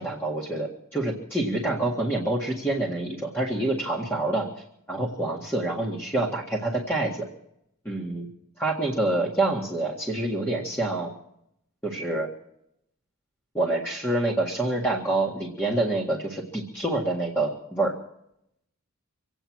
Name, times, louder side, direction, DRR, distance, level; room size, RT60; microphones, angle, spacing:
voice 1, 0.0-4.5 4.9-7.3 7.9-8.3 8.6-11.1 11.8-12.3 13.5-17.9, right 2 dB, 10° left, -3 dB, 1.8 m, -27 dB
25.0 x 9.0 x 6.2 m, 0.76 s
head